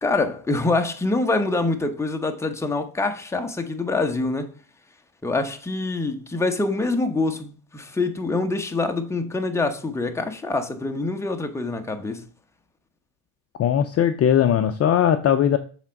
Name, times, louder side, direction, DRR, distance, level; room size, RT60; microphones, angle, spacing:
voice 1, 0.0-4.5 5.2-12.2, left 3 dB, 5° left, 0.9 m, -25 dB
voice 2, 13.6-15.6, left 9 dB, 35° left, 0.6 m, -19 dB
7.2 x 3.6 x 5.2 m
supercardioid pair, 110°, 44 cm